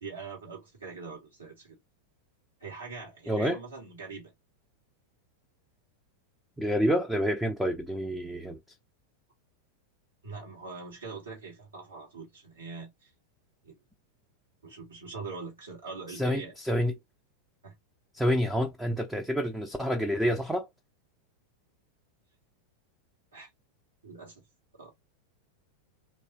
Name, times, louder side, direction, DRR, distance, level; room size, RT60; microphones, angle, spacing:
voice 1, 0.0-1.8 2.6-4.3 10.2-13.1 13.6-13.8 14.6-16.5 17.6-17.7 23.3-23.5 24.0-24.4 24.8-24.9, right 4 dB, 80° right, 1.8 m, -43 dB
voice 2, 3.3-3.6 6.6-8.6 16.1-17.0 18.1-20.7, equal, ahead, 0.5 m, -28 dB
3.0 x 2.9 x 2.7 m
figure-of-eight pair, 90°, 0 cm